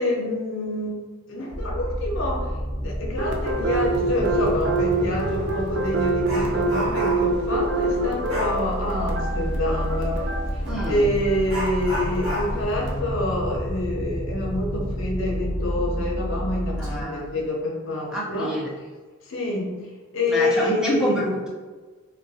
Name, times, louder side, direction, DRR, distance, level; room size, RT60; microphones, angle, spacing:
voice 1, 0.0-2.5 2.8-10.2 10.9-18.5 19.2-19.9 20.1-21.1, left 1 dB, 65° left, -2 dB, 0.7 m, -27 dB
sound 1, 1.5-17.0, equal, 30° left, 0.8 m, -30 dB
sound 2, 3.2-13.0, right 3 dB, 60° right, 0.5 m, -27 dB
Dog, 5.9-7.4 8.3-8.6 10.6-10.8 11.5-14.8 15.1-15.2 15.7-15.8 16.5-16.9 17.2-17.5, right 1 dB, 80° right, 1.0 m, -32 dB
voice 2, 10.6-11.1 16.8-17.3 18.1-18.7 20.3-21.5, equal, 5° right, -6 dB, 0.5 m, -27 dB
3.7 x 2.2 x 2.7 m, 1.3 s
head